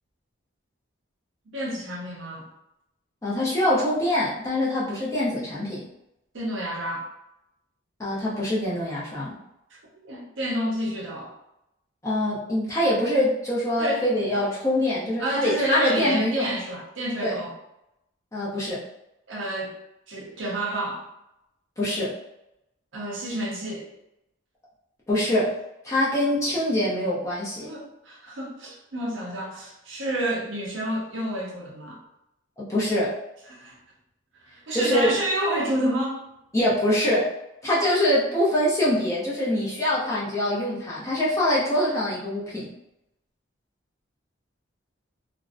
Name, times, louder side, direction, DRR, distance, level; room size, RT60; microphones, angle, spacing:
voice 1, 1.5-2.5 6.3-7.1 9.7-9.8 10.0-11.3 13.8-14.4 15.2-17.5 19.3-19.7 20.1-21.1 22.9-23.9 27.6-32.0 33.5-33.8 34.4-36.2, right 1 dB, 65° right, -2 dB, 0.6 m, -29 dB
voice 2, 3.2-5.8 8.0-9.3 12.0-16.5 17.2-17.4 18.3-18.8 21.8-22.1 25.1-25.6 25.8-27.7 32.6-33.2 34.7-35.1 36.5-37.3 37.6-42.7, left 1 dB, 15° left, -7 dB, 0.5 m, -24 dB
2.5 x 2.1 x 2.4 m, 0.86 s
head